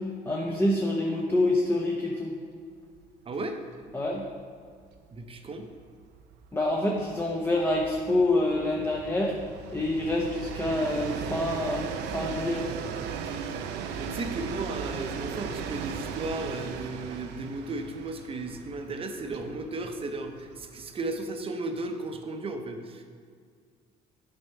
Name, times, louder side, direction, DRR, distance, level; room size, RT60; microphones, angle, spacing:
voice 1, 0.0-2.3 3.9-4.2 6.5-9.4 9.7-12.7, left 1 dB, 15° left, -1 dB, 0.8 m, -27 dB
Train, 3.0-3.1 3.4-3.5 3.8-21.2, right 6 dB, 90° right, 0.6 m, -38 dB
voice 2, 3.3-3.6 5.1-5.7 14.0-23.0, right 2 dB, 35° right, 6 dB, 0.8 m, -35 dB
7.8 x 4.5 x 5.5 m, 2.1 s
cardioid pair, 110°, 17 cm